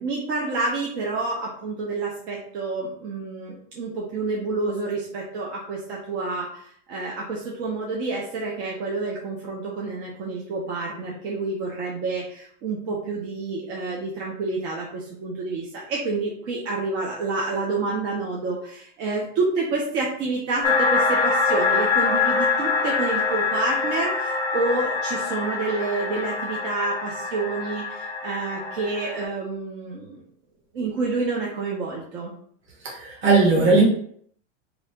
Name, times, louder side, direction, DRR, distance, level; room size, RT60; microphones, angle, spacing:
voice 1, 0.0-30.2 30.7-32.3, right 3 dB, 65° right, -2 dB, 1.0 m, -28 dB
sound 1, 20.6-29.2, left 4 dB, 10° left, 0.4 m, -24 dB
voice 2, 32.8-33.8, right 3 dB, 30° right, -3 dB, 1.3 m, -18 dB
3.1 x 2.7 x 4.4 m, 0.62 s
supercardioid pair, 125°, 37 cm